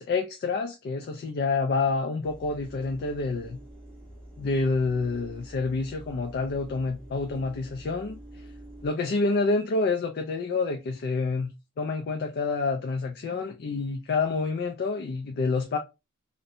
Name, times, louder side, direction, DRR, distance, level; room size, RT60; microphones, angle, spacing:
voice 1, 0.0-3.6 4.4-8.5 8.8-15.8, left 3 dB, 45° left, 0.3 m, -28 dB
sound 1, 2.2-8.9, right 1 dB, 5° left, 0.8 m, -46 dB
2.6 x 2.1 x 2.6 m
head